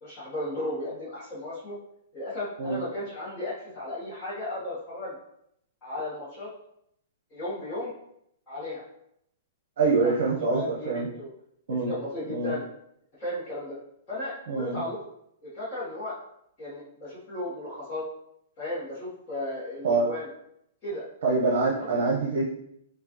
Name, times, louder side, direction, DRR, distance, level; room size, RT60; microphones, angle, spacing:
voice 1, 0.0-1.8 2.1-5.2 5.8-6.5 7.3-7.9 8.5-8.8 10.0-11.3 11.7-12.6 13.2-13.8 14.1-15.0 15.4-16.1 16.6-18.0 18.6-20.3 20.8-21.1 21.7-21.9, left 1 dB, 20° left, -12 dB, 1.1 m, -35 dB
voice 2, 9.8-11.1 11.7-11.9 12.3-12.5 14.5-14.8 19.8-20.1 21.2-22.5, right 3 dB, 55° right, -4 dB, 0.8 m, -25 dB
4.7 x 2.3 x 2.8 m, 0.75 s
hypercardioid pair, 175°, 0 cm